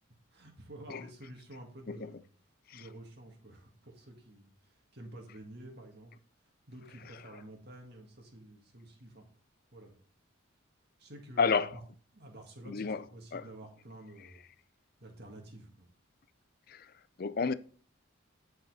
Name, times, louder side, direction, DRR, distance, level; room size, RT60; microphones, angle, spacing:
voice 1, 0.3-2.3 2.7-4.5 4.9-6.1 6.7-9.3 9.7-9.9 11.0-11.8 12.1-14.4 15.0-15.9, right 1 dB, 50° right, 1.9 m, -50 dB
voice 2, 11.4-11.7 12.7-13.0 13.3-13.4 16.7-16.9 17.2-17.5, left 5 dB, 45° left, 0.4 m, -30 dB
10.0 x 5.6 x 4.1 m
head